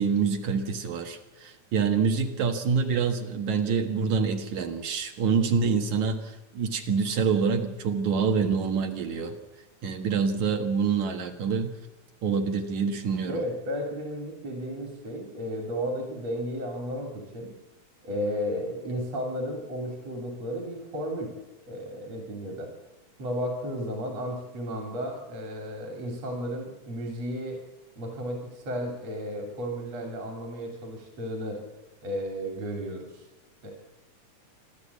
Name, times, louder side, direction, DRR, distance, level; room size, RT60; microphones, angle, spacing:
voice 1, 0.0-6.2 6.5-9.4 9.8-11.7 12.2-13.4, right 5 dB, 70° right, 5 dB, 3.0 m, -26 dB
voice 2, 13.3-17.5 18.0-21.3 21.7-22.7 23.2-27.6 28.0-31.6 32.0-33.2 33.6-33.7, equal, 55° right, 2 dB, 4.2 m, -33 dB
27.0 x 12.5 x 8.4 m, 1.0 s
omnidirectional pair, 3.5 m